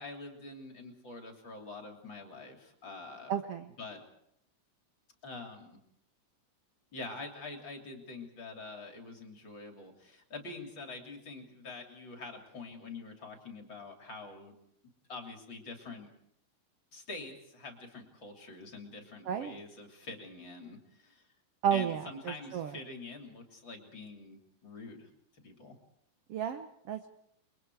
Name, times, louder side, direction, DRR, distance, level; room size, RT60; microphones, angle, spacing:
voice 1, 0.0-3.3 3.8-4.0 5.2-5.8 6.9-14.5 15.1-16.1 16.9-21.3 21.7-25.8, left 3 dB, 35° left, 3 dB, 3.6 m, -46 dB
voice 2, 3.3-3.7 19.3-19.6 21.6-22.0 22.5-22.7 26.3-27.0, right 9 dB, 70° right, 8 dB, 1.4 m, -31 dB
30.0 x 23.0 x 4.8 m, 0.73 s
omnidirectional pair, 3.9 m